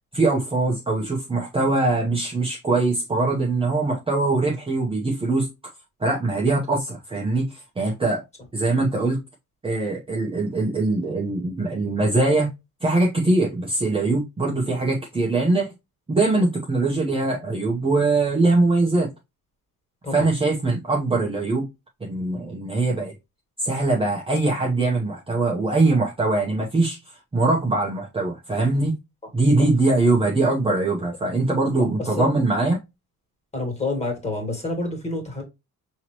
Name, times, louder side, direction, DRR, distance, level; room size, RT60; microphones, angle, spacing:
voice 1, 0.1-5.5 6.0-8.2 8.5-9.2 9.6-12.5 12.8-15.7 16.1-19.1 20.1-21.7 22.0-23.1 23.6-27.0 27.3-29.0 29.3-32.8, right 2 dB, 15° right, 0.8 m, -22 dB
voice 2, 31.8-32.3 33.5-35.4, left 2 dB, 20° left, 2.1 m, -28 dB
5.7 x 3.0 x 2.9 m
cardioid pair, 155°, 34 cm